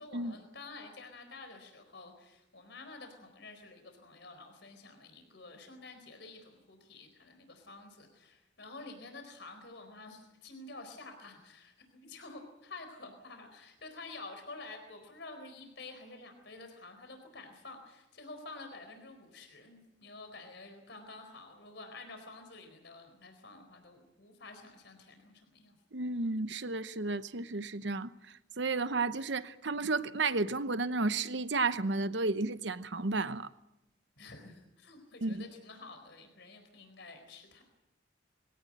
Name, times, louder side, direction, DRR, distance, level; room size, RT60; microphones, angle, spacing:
voice 1, 0.0-25.7 34.2-37.6, left 3 dB, 65° left, 4.4 m, -50 dB
voice 2, 25.9-28.1 28.6-33.5 35.2-35.5, right 3 dB, 65° right, 1.0 m, -32 dB
22.5 x 17.5 x 8.9 m
head